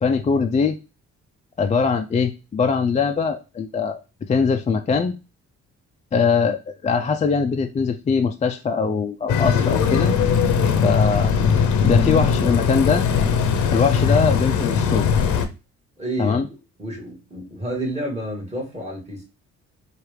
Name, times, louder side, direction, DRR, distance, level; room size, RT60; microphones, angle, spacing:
voice 1, 0.0-0.8 1.6-4.0 4.3-5.1 6.1-10.1 10.8-11.3 11.8-13.0 13.7-15.1 16.2-16.5, left 5 dB, 25° left, 0.3 m, -21 dB
sound 1, 9.3-15.5, left 6 dB, 75° left, 0.7 m, -19 dB
voice 2, 16.0-16.4 16.8-19.2, right 1 dB, 20° right, 2.0 m, -29 dB
4.6 x 2.4 x 3.2 m
cardioid pair, 90°, 30 cm